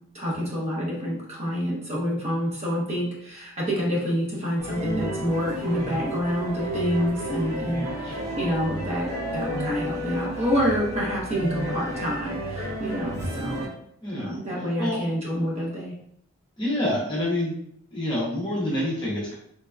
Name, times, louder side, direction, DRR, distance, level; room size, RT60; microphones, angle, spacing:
voice 1, 0.1-13.6 14.1-15.9, equal, 30° right, -5 dB, 0.9 m, -27 dB
sound 1, 4.6-13.7, equal, 75° right, 1.2 m, -31 dB
voice 2, 14.0-14.3 14.8-15.0 16.6-17.5 17.9-19.3, left 1 dB, 20° left, -7 dB, 0.8 m, -27 dB
3.3 x 2.8 x 2.3 m, 0.72 s
head